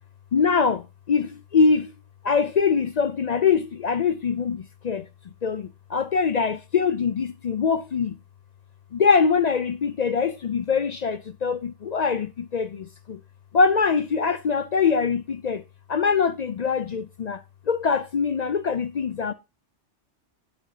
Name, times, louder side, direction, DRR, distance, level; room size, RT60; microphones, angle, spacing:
voice 1, 0.3-1.9 2.2-5.0 5.4-8.2 8.9-13.2 13.5-15.6 15.9-17.4 17.7-19.3, left 5 dB, 55° left, 0.4 m, -23 dB
10.0 x 6.5 x 2.7 m
omnidirectional pair, 1.2 m